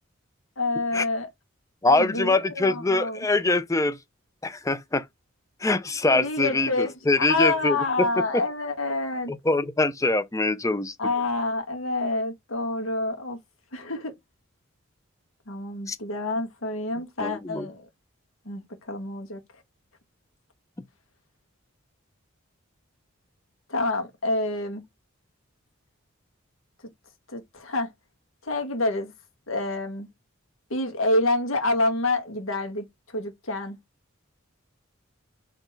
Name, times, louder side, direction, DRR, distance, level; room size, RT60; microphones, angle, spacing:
voice 1, 0.6-1.3 1.9-3.3 6.1-9.3 11.0-13.4 13.7-14.1 15.5-17.9 18.4-19.4 23.7-24.8 27.3-27.9 28.4-29.1 29.5-30.1 30.7-32.9 33.1-33.8, left 2 dB, 70° left, 1.5 m, -27 dB
voice 2, 1.8-4.0 4.4-5.0 5.6-8.1 9.3-10.9 15.9-16.0 17.2-17.7, left 2 dB, 15° left, 0.5 m, -24 dB
4.1 x 3.1 x 4.0 m
head